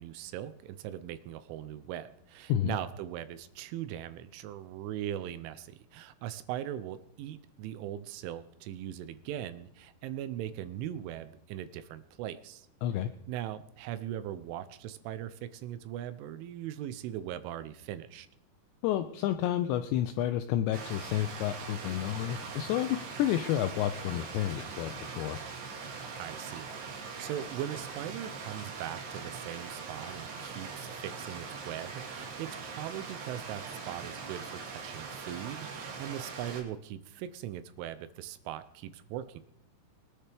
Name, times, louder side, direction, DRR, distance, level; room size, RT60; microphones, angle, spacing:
voice 1, 0.0-12.7 13.3-18.3 26.2-39.4, right 11 dB, 80° right, 13 dB, 3.1 m, -40 dB
voice 2, 18.8-25.4, left 12 dB, 85° left, 8 dB, 2.5 m, -30 dB
Stream, 20.7-36.6, right 5 dB, 65° right, 3.7 m, -42 dB
22.5 x 10.0 x 3.4 m, 0.75 s
omnidirectional pair, 5.7 m